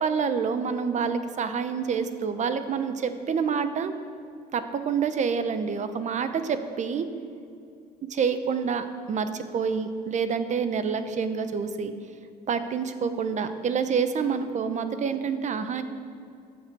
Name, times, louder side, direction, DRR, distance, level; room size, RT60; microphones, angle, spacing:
voice 1, 0.0-3.9 4.5-7.1 8.1-11.9 12.5-15.8, right 6 dB, 45° right, 10 dB, 0.9 m, -27 dB
14.5 x 7.3 x 6.1 m, 2.5 s
cardioid pair, 110°, 17 cm